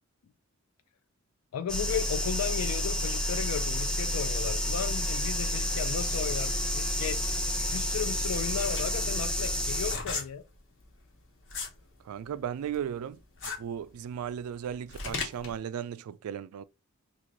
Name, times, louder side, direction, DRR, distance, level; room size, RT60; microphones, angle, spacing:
voice 1, 1.5-7.2 7.7-10.4, left 7 dB, 85° left, 0.4 m, -35 dB
sound 1, 1.7-10.0, equal, 5° left, 0.4 m, -30 dB
sound 2, 8.6-11.8 12.2-15.6, left 4 dB, 55° left, 1.1 m, -37 dB
voice 2, 12.1-13.2 13.6-16.6, right 8 dB, 85° right, 0.3 m, -36 dB
3.1 x 2.5 x 3.7 m
head